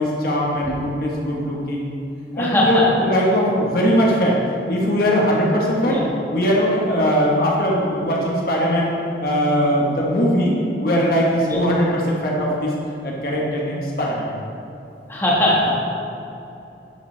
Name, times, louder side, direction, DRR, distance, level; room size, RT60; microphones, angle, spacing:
voice 1, 0.0-1.9 2.4-4.4 4.7-6.0 6.3-8.9 9.2-12.7 13.0-14.3, equal, 55° left, -3 dB, 1.2 m, -20 dB
voice 2, 2.3-2.9 5.8-6.1 7.0-7.1 11.5-11.6 15.1-15.8, left 1 dB, 15° left, -6 dB, 1.4 m, -20 dB
10.0 x 6.6 x 3.3 m, 2.8 s
head